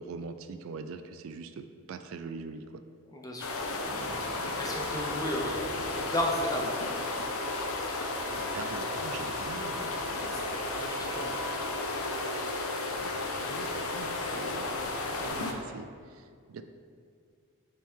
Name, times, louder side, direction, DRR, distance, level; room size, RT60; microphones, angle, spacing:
voice 1, 0.0-2.8 5.7-5.9 8.2-10.0 12.9-14.8 15.2-16.6, right 4 dB, 65° right, 9 dB, 0.3 m, -43 dB
sound 1, 3.4-15.5, left 2 dB, 75° left, 0.6 m, -34 dB
sound 2, 3.8-15.3, left 1 dB, 45° left, 1.3 m, -42 dB
voice 2, 4.6-5.6 5.9-6.7 10.3-10.5 10.8-11.4, left 1 dB, 15° left, 0 dB, 0.6 m, -33 dB
7.4 x 3.6 x 4.6 m, 2.1 s
head